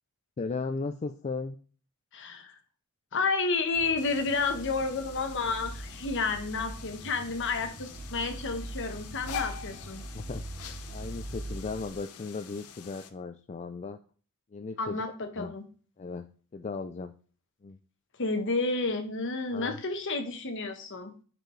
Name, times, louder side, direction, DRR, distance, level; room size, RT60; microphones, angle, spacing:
voice 1, 0.4-1.6 10.1-10.4 10.9-14.0 14.5-15.0 15.4-15.5 16.0-16.3 16.5-17.1 17.6-17.8 19.5-19.7, left 4 dB, 30° left, 6 dB, 0.4 m, -36 dB
voice 2, 2.1-2.5 3.1-10.0 14.8-15.6 18.2-21.1, left 4 dB, 55° left, 7 dB, 1.0 m, -31 dB
sound 1, 3.8-11.9, right 1 dB, 35° right, 0.8 m, -42 dB
sound 2, 4.0-13.1, left 8 dB, 75° left, 0.7 m, -45 dB
7.6 x 4.6 x 3.2 m, 0.39 s
head